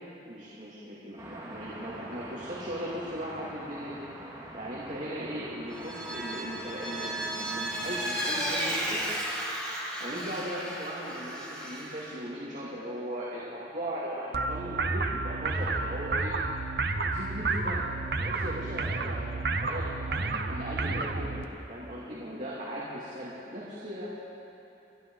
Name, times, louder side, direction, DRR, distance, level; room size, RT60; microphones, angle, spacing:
voice 1, 0.2-4.0 4.5-9.0 10.0-16.3 16.9-24.1, equal, 45° right, -7 dB, 2.4 m, -38 dB
sound 1, 1.2-9.2, right 1 dB, 20° right, 2.3 m, -45 dB
Vehicle, 5.7-12.1, right 1 dB, 5° left, 2.8 m, -34 dB
sound 2, 14.3-21.4, right 3 dB, 60° right, 0.8 m, -31 dB
29.0 x 11.5 x 3.9 m, 2.9 s
head